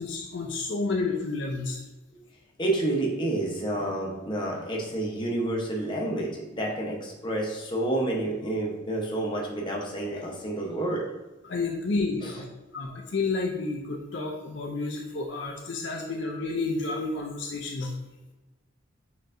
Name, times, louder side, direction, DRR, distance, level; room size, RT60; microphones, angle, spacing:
voice 1, 0.0-1.8 11.4-12.5 12.7-17.9, left 3 dB, 60° left, 0 dB, 0.5 m, -30 dB
voice 2, 2.6-11.1 12.2-12.4, right 1 dB, 25° left, -2 dB, 0.8 m, -29 dB
6.6 x 3.0 x 2.6 m, 1.1 s
head